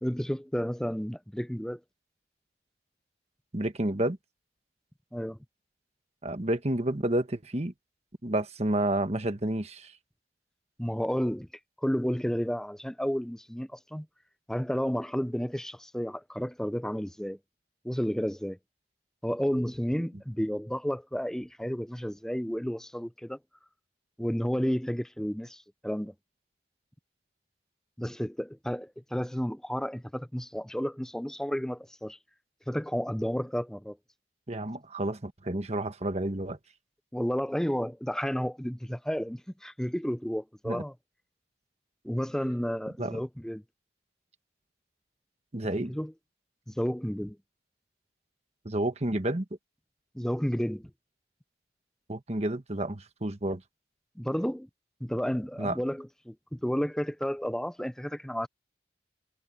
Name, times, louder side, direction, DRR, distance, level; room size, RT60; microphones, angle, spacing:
voice 1, 0.0-1.8 5.1-5.4 10.8-11.5 11.8-14.1 14.5-17.4 17.8-18.6 19.2-23.4 24.2-26.1 28.0-32.2 32.7-34.0 37.1-40.9 42.0-43.6 45.9-46.1 46.7-47.4 50.1-50.9 54.2-54.7 55.0-58.5, equal, 5° left, 0.5 m, -31 dB
voice 2, 3.5-4.2 6.2-7.7 8.2-9.9 34.5-36.6 40.6-40.8 43.0-43.2 45.5-45.9 48.6-49.4 52.1-53.6 55.6-55.8, right 1 dB, 35° right, 1.3 m, -30 dB
head